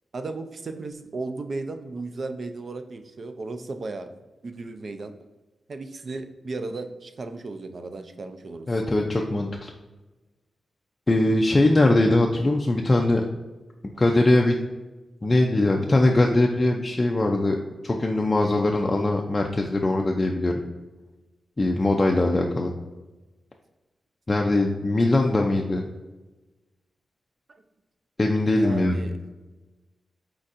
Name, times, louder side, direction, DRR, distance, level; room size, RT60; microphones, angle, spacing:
voice 1, 0.1-4.1 4.4-5.1 5.7-8.7 27.5-27.6 28.6-29.2, right 3 dB, 50° right, 8 dB, 0.4 m, -35 dB
voice 2, 8.7-9.7 11.1-13.3 14.0-14.5 15.2-17.6 17.8-20.5 21.6-22.7 24.3-25.8 28.2-29.0, left 2 dB, 25° left, 0 dB, 0.3 m, -21 dB
4.4 x 4.0 x 2.5 m, 1.2 s
wide cardioid pair, 110°, 0 cm